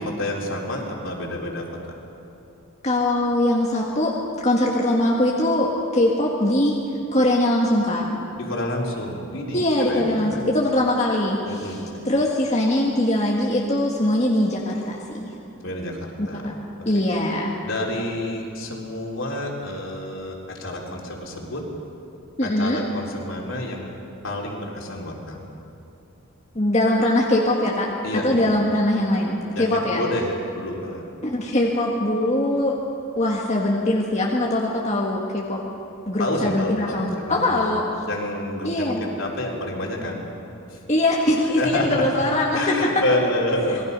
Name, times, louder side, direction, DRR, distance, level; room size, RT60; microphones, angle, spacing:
voice 1, 0.0-1.7 8.4-9.6 9.9-10.5 11.5-11.8 15.6-16.5 16.8-17.0 17.6-21.7 22.4-23.9 24.2-25.5 28.0-28.4 29.5-31.0 36.2-37.6 38.1-40.3 40.7-40.8 41.6-42.0 42.5-43.8, left 1 dB, 60° left, -1 dB, 3.8 m, -28 dB
voice 2, 2.8-4.2 4.4-6.8 7.1-8.1 9.5-11.8 12.1-15.4 16.2-16.6 16.8-17.6 22.4-22.8 26.6-30.0 31.2-32.8 33.2-35.6 36.1-37.8 38.6-39.0 40.9-42.7, left 1 dB, 30° left, -3 dB, 1.8 m, -22 dB
27.0 x 21.5 x 5.5 m, 2.8 s
head